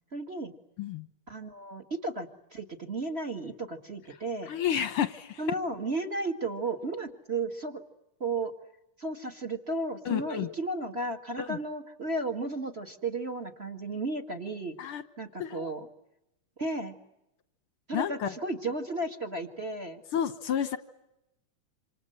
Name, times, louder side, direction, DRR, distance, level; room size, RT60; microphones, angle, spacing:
voice 1, 0.1-0.5 1.3-4.5 5.4-7.8 8.2-8.5 9.0-14.7 15.2-15.9 16.6-17.0 17.9-20.0, right 2 dB, 25° right, 6 dB, 1.6 m, -34 dB
voice 2, 4.5-5.4 10.0-10.5 11.4-11.6 14.8-15.0 15.4-15.7 17.9-18.3 20.1-20.8, left 9 dB, 60° left, 11 dB, 1.6 m, -30 dB
27.5 x 27.0 x 8.0 m, 0.87 s
omnidirectional pair, 3.6 m